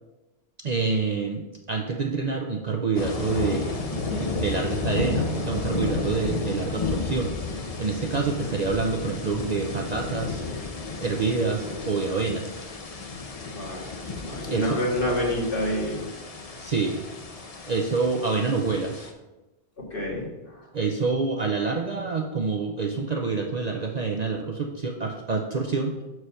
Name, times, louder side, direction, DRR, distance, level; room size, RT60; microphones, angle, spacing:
voice 1, 0.6-7.3 7.8-10.4 11.0-12.5 14.5-14.8 16.6-17.0 17.7-19.1 20.7-26.0, right 4 dB, 45° right, 2 dB, 0.6 m, -27 dB
sound 1, 2.9-19.1, left 4 dB, 40° left, 0.7 m, -32 dB
voice 2, 13.5-13.9 14.2-16.1 19.9-20.6, left 1 dB, 55° left, -4 dB, 2.1 m, -28 dB
6.4 x 4.7 x 5.6 m, 1.1 s
omnidirectional pair, 1.1 m